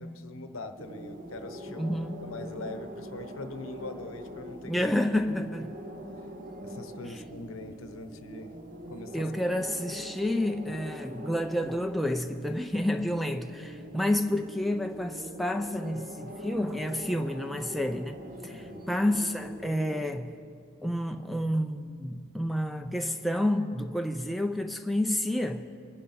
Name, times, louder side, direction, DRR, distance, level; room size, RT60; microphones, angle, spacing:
voice 1, 0.0-2.0 2.2-4.7 6.6-8.5 8.9-9.3 18.5-18.9, left 3 dB, 70° left, 0.8 m, -42 dB
sound 1, 0.8-20.0, right 1 dB, 40° right, 0.9 m, -43 dB
voice 2, 1.7-2.2 4.7-5.7 9.1-18.2 18.4-20.3 20.8-25.7, left 1 dB, ahead, 0.4 m, -29 dB
24.5 x 10.5 x 4.2 m
head